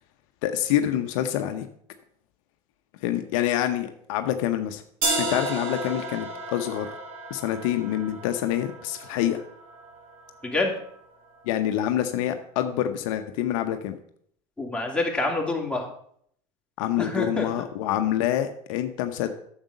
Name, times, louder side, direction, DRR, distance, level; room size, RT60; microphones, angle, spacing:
voice 1, 0.4-1.7 3.0-4.8 5.1-6.9 7.3-9.4 11.5-14.0 16.8-19.3, left 11 dB, 75° left, 8 dB, 0.8 m, -26 dB
sound 1, 5.0-11.0, right 2 dB, 85° right, 3.7 m, -33 dB
voice 2, 14.6-15.8 17.0-17.5, left 2 dB, 5° left, -1 dB, 2.7 m, -26 dB
8.9 x 7.2 x 5.2 m, 0.65 s
hypercardioid pair, 85°, 17 cm